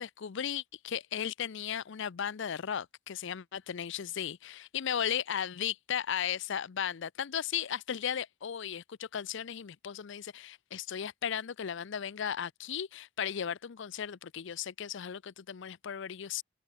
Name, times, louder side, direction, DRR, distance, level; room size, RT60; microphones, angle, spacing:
voice 1, 0.0-16.4, left 8 dB, 70° left, 0.5 m, -36 dB
head